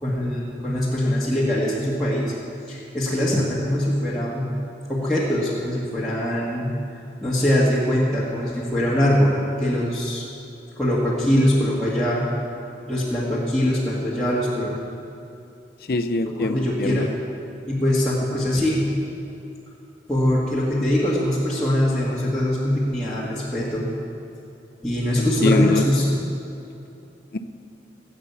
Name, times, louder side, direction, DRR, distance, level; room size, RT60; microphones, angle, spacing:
voice 1, 0.0-2.3 2.7-4.6 4.9-6.8 7.2-10.2 10.8-12.3 12.9-14.7 16.4-17.1 17.6-18.9 20.1-23.9 24.8-26.2, left 1 dB, 5° left, -9 dB, 1.7 m, -22 dB
voice 2, 15.9-17.1 25.2-25.9 27.3-27.4, left 2 dB, 55° left, 9 dB, 0.6 m, -23 dB
17.0 x 8.1 x 7.0 m, 2.8 s
head